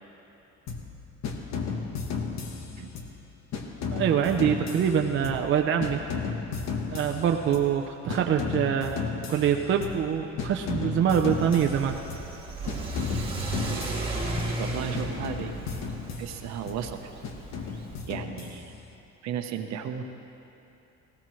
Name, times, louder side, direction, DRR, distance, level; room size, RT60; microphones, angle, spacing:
sound 1, 0.7-1.0 1.2-3.2 3.5-5.6 5.8-7.8 8.1-10.1 10.4-12.3 12.7-14.7 14.9-16.8 17.2-18.9, left 5 dB, 60° left, 1.3 m, -34 dB
voice 1, 3.9-6.0 6.9-9.0 9.3-12.0, right 8 dB, 40° right, 3 dB, 0.6 m, -25 dB
Car / Accelerating revving vroom, 11.3-18.0, right 2 dB, 15° right, 1.6 m, -34 dB
voice 2, 14.6-15.6 16.2-17.1 18.1-18.7 19.2-20.0, right 8 dB, 60° right, 6 dB, 1.0 m, -34 dB
18.0 x 16.5 x 3.2 m, 2.9 s
cardioid pair, 140°, 30 cm